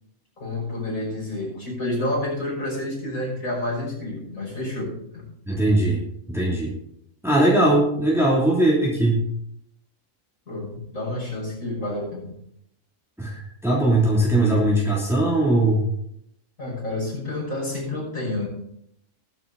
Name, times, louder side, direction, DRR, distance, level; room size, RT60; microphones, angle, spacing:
voice 1, 0.4-5.3 10.5-12.3 16.6-18.5, left 1 dB, 90° left, -4 dB, 6.3 m, -29 dB
voice 2, 5.5-6.0 6.3-6.7 7.2-9.3 13.2-13.3 13.6-15.8, right 1 dB, ahead, -5 dB, 3.1 m, -19 dB
20.5 x 7.4 x 4.1 m, 0.73 s
omnidirectional pair, 1.4 m